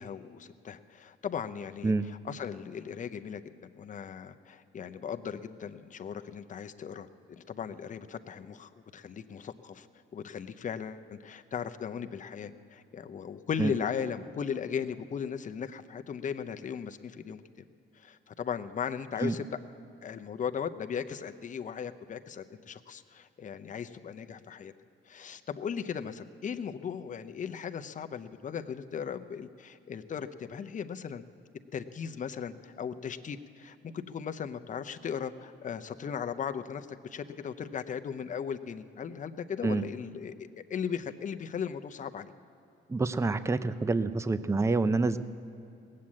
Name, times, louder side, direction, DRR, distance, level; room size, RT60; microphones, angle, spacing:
voice 1, 0.0-9.9 10.1-17.6 17.9-19.5 20.0-24.7 25.1-31.2 31.7-42.3, left 7 dB, 40° left, 8 dB, 0.7 m, -37 dB
voice 2, 42.9-45.2, right 3 dB, 15° right, 13 dB, 0.5 m, -27 dB
18.0 x 7.6 x 8.5 m, 2.7 s
cardioid pair, 90°, 20 cm